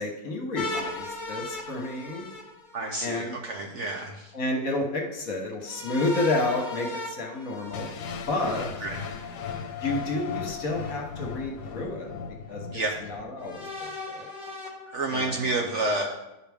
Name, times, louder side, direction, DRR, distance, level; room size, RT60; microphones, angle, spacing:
voice 1, 0.0-2.3 3.0-3.3 4.3-7.9 8.3-8.7 9.8-12.1 12.5-12.6 13.0-14.3 15.1-15.5, left 2 dB, 55° left, 1 dB, 1.5 m, -30 dB
sound 1, 0.5-3.2 5.6-8.7 10.0-10.9 11.7-11.8 13.4-15.4, left 2 dB, 35° left, 1.1 m, -38 dB
voice 2, 2.7-4.3 8.8-9.0 12.7-12.9 14.9-16.1, right 2 dB, 55° right, 0 dB, 0.9 m, -29 dB
sound 2, 7.7-13.7, left 6 dB, 80° left, 1.2 m, -37 dB
11.5 x 4.7 x 3.5 m, 0.95 s
omnidirectional pair, 1.8 m